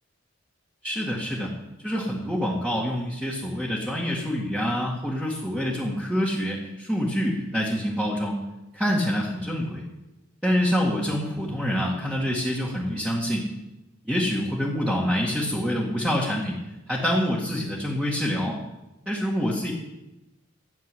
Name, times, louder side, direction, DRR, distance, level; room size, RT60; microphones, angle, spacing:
voice 1, 0.8-1.5 1.8-8.4 8.7-9.8 10.4-13.5 14.0-16.6 16.9-18.6 19.1-19.7, equal, 5° right, -5 dB, 2.0 m, -26 dB
13.5 x 7.2 x 9.2 m, 0.97 s
head